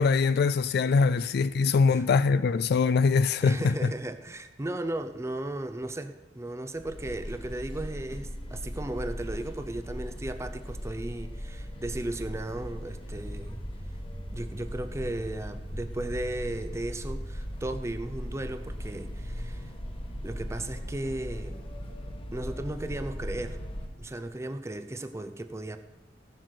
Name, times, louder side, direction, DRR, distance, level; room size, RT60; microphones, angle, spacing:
voice 1, 0.0-3.7, left 4 dB, 60° left, 0.3 m, -23 dB
voice 2, 3.4-13.6 14.3-19.7 20.2-21.7 22.3-23.6 24.0-25.8, right 1 dB, 15° right, 0.5 m, -35 dB
sound 1, 6.8-23.9, equal, 30° left, 1.3 m, -38 dB
15.5 x 7.7 x 6.5 m
head